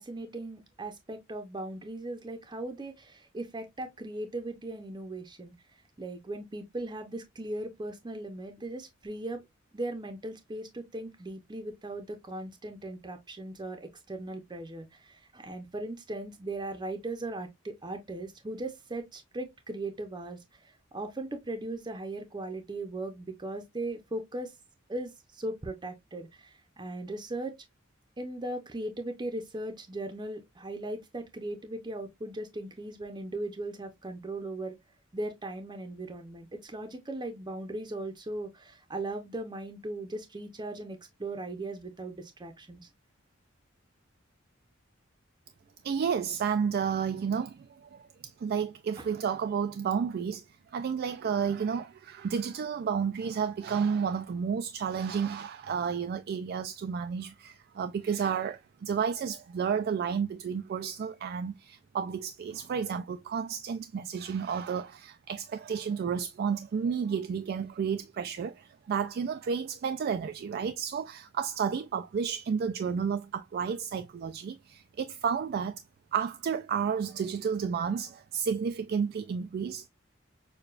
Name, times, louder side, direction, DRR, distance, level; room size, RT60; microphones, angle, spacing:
voice 1, 0.0-9.4 9.7-24.5 24.9-27.6 28.2-34.8 35.1-42.9 49.0-49.1, right 2 dB, 20° right, 0.6 m, -38 dB
voice 2, 45.8-48.1 48.4-50.4 50.7-75.8 76.1-79.9, right 6 dB, 50° right, 0.3 m, -31 dB
6.6 x 2.3 x 2.4 m
head